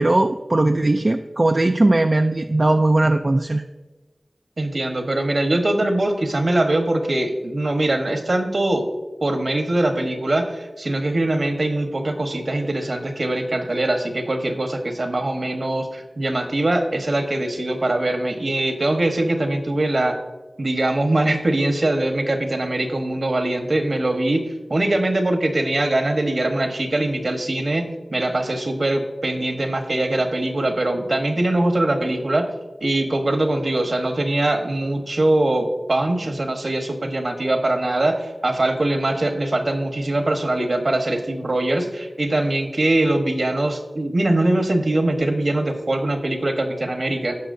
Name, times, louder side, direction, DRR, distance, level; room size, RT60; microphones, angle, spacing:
voice 1, 0.0-3.6, right 2 dB, 35° right, 6 dB, 0.4 m, -18 dB
voice 2, 4.6-8.9 9.2-20.2 20.6-32.5 32.8-47.4, right 1 dB, 55° right, 4 dB, 1.2 m, -22 dB
16.5 x 5.8 x 2.7 m, 1.2 s
wide cardioid pair, 80°, 0 cm